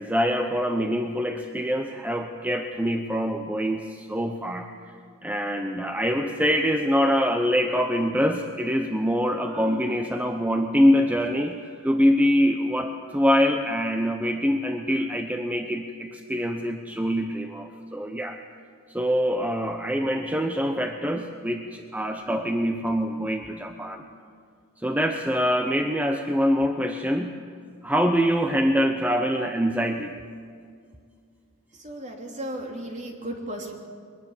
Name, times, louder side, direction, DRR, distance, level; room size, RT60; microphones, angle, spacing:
voice 1, 0.0-4.7 5.2-11.6 11.8-18.4 18.9-24.0 24.8-27.4 27.8-30.1, equal, 5° right, 5 dB, 0.8 m, -24 dB
voice 2, 31.7-33.7, right 1 dB, 35° right, 1 dB, 3.1 m, -35 dB
22.5 x 20.5 x 7.3 m, 2.2 s
head